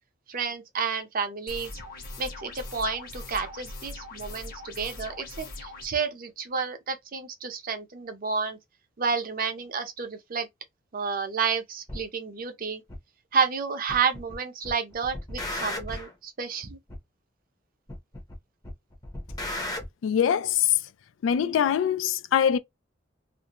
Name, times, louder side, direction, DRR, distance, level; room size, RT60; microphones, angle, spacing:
voice 1, 0.3-1.8 2.2-8.6 9.0-10.5 10.9-12.8 13.3-16.8, right 5 dB, 50° right, 0.6 m, -30 dB
sound 1, 1.5-5.9, left 2 dB, 50° left, 1.0 m, -41 dB
sound 2, 11.9-12.0 12.9-13.0 13.9-14.4 14.6-16.1 16.9-17.0 17.9-18.4 18.6-19.9, left 1 dB, 20° left, 0.6 m, -35 dB
voice 2, 20.0-20.7 21.2-22.6, left 9 dB, 85° left, 0.3 m, -23 dB
2.5 x 2.0 x 2.8 m
head